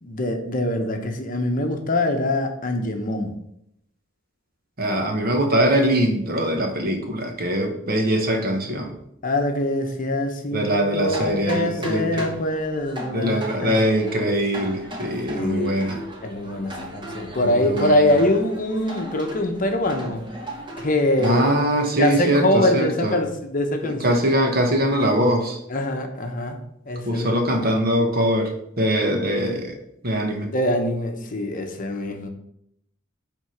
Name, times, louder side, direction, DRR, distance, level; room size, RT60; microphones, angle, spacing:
voice 1, 0.0-3.4 9.2-13.8 15.3-15.7 16.2-20.3 20.8-21.5 22.0-24.2 25.7-26.6 26.9-27.4 30.5-32.3, left 1 dB, 40° left, 5 dB, 0.9 m, -23 dB
voice 2, 4.8-8.9 10.5-12.2 13.1-16.0 17.4-18.0 21.2-23.1 23.8-25.6 27.0-29.8 30.0-30.5, right 1 dB, 45° right, 3 dB, 1.3 m, -22 dB
sound 1, 11.0-21.4, right 1 dB, 25° right, 1.3 m, -37 dB
7.9 x 3.7 x 5.8 m, 0.76 s
head